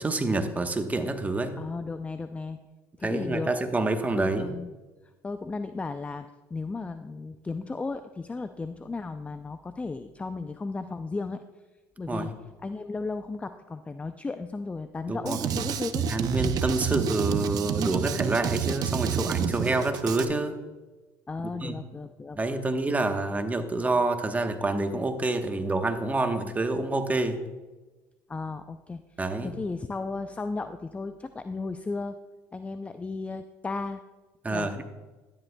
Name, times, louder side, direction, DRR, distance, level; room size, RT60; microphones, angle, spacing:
voice 1, 0.0-1.5 3.0-4.5 12.1-12.3 15.1-15.6 16.1-20.6 21.6-21.8 22.4-27.4 29.2-29.5 34.4-34.8, right 2 dB, 20° right, 7 dB, 1.1 m, -27 dB
voice 2, 1.6-2.6 3.0-3.5 4.1-4.7 5.2-11.4 12.0-16.0 21.3-22.6 28.3-32.2 32.5-34.0 34.5-34.7, left 3 dB, 15° left, 10 dB, 0.4 m, -35 dB
Drum kit, 15.3-20.3, right 8 dB, 55° right, 0.6 m, -29 dB
12.5 x 10.5 x 2.3 m, 1.2 s
supercardioid pair, 80°, 8 cm